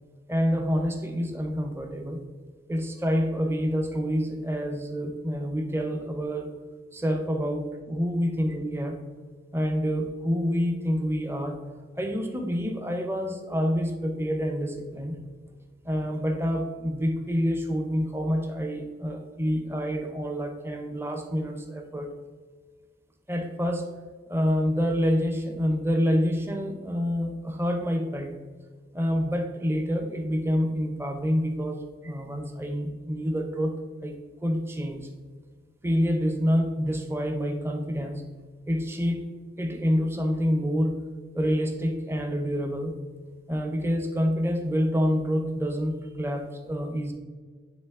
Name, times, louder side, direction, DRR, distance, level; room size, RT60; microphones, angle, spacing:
voice 1, 0.3-2.2 2.7-6.5 6.9-9.0 9.5-11.6 11.9-15.2 15.8-22.1 23.3-23.9 24.3-28.4 28.9-35.1 35.8-38.2 38.7-39.2 39.6-41.0 41.3-43.0 43.5-47.1, equal, 15° right, 4 dB, 0.5 m, -27 dB
9.3 x 3.5 x 3.5 m, 1.5 s
head